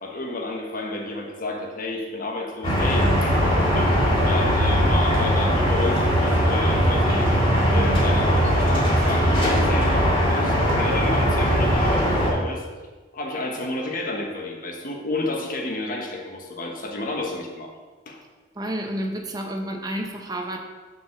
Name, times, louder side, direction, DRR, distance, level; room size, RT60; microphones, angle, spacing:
voice 1, 0.0-7.3 7.7-12.6 13.1-17.7 18.1-18.2, left 2 dB, 45° left, 1 dB, 1.1 m, -31 dB
sound 1, 2.6-12.3, equal, 25° left, 1.9 m, -20 dB
voice 2, 18.5-20.6, right 1 dB, 20° right, 2 dB, 0.9 m, -30 dB
6.5 x 4.6 x 6.4 m, 1.3 s
head